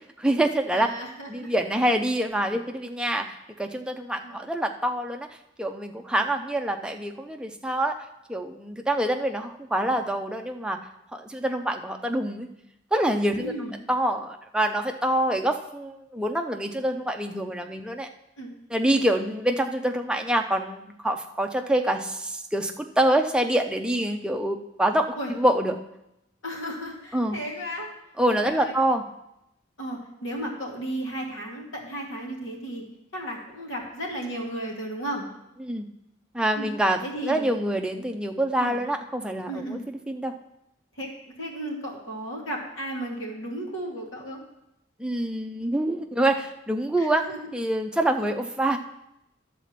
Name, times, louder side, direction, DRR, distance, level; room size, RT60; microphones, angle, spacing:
voice 1, 0.0-0.9 1.3-5.3 5.6-8.0 8.3-10.8 11.1-12.5 12.9-13.5 13.9-18.1 18.7-25.8 27.1-27.4 28.2-29.0 35.6-35.9 36.3-39.8 40.1-40.3 45.0-47.2 47.5-48.8, right 1 dB, 5° right, 3 dB, 0.5 m, -26 dB
voice 2, 0.7-1.6 4.2-4.4 13.4-13.8 18.4-18.5 25.2-25.3 26.4-27.9 28.4-28.7 29.8-32.8 33.1-35.3 36.6-36.7 37.0-37.6 38.6-38.8 39.5-39.8 41.0-41.1 41.4-44.4 47.0-47.5 48.2-48.4, right 1 dB, 80° left, -1 dB, 2.1 m, -34 dB
11.0 x 4.2 x 7.3 m, 0.85 s
head